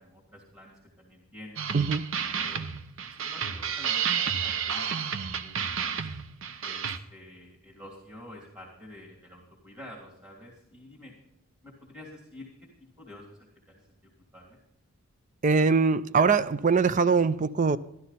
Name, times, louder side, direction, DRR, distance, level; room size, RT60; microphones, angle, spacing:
voice 1, 0.0-1.7 2.4-2.6 3.1-6.1 6.6-11.1 11.6-12.7 13.0-14.6, left 1 dB, 15° right, -1 dB, 2.7 m, -49 dB
sound 1, 1.6-7.0, right 7 dB, 60° right, 0.8 m, -31 dB
voice 2, 1.7-2.2 15.4-17.8, right 5 dB, 35° right, 15 dB, 0.4 m, -23 dB
13.0 x 13.0 x 4.2 m, 0.83 s
head